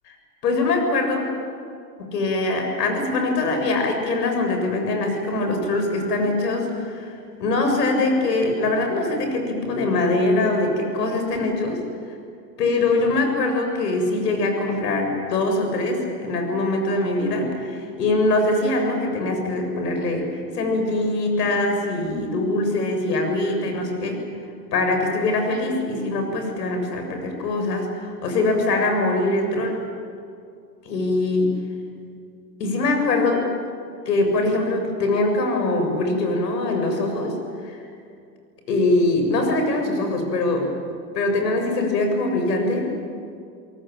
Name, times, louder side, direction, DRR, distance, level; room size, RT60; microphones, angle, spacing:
voice 1, 0.4-1.3 2.1-11.8 12.6-20.3 20.5-24.2 24.7-29.8 30.9-31.7 32.6-33.4 34.1-37.3 37.6-37.9 38.7-40.7 41.1-42.9, left 2 dB, 75° left, 4 dB, 7.3 m, -23 dB
30.0 x 18.5 x 9.1 m, 2.4 s
hypercardioid pair, 135°, 48 cm